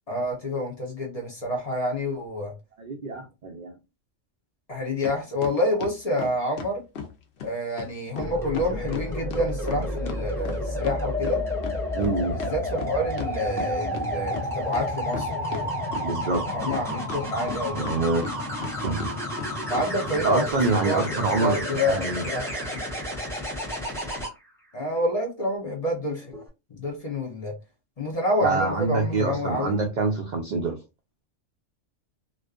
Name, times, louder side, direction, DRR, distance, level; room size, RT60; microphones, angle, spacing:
voice 1, 0.1-2.5 4.7-6.8 7.4-11.4 12.0-15.7 16.5-17.8 19.7-20.5 20.8-22.8 24.7-26.4 26.7-27.5 28.0-29.7, left 1 dB, 35° left, 0.8 m, -28 dB
voice 2, 2.8-3.7 11.9-12.4 16.0-17.0 17.7-18.2 18.8-19.1 20.2-22.2 28.4-30.8, right 3 dB, 70° right, 0.4 m, -26 dB
sound 1, 5.0-5.2 5.4-7.1 7.4-7.5 7.8-8.3 8.5-11.0 11.2-14.0 14.3-14.4 14.7-15.6 15.9-16.8 17.1-18.7 19.0-19.5 19.7-19.9 20.1-20.2 20.6-20.8 21.1-21.2, left 5 dB, 65° left, 0.8 m, -36 dB
sound 2, 8.2-24.3 26.2-26.5, equal, 5° left, 0.9 m, -31 dB
2.5 x 2.3 x 2.3 m
omnidirectional pair, 1.3 m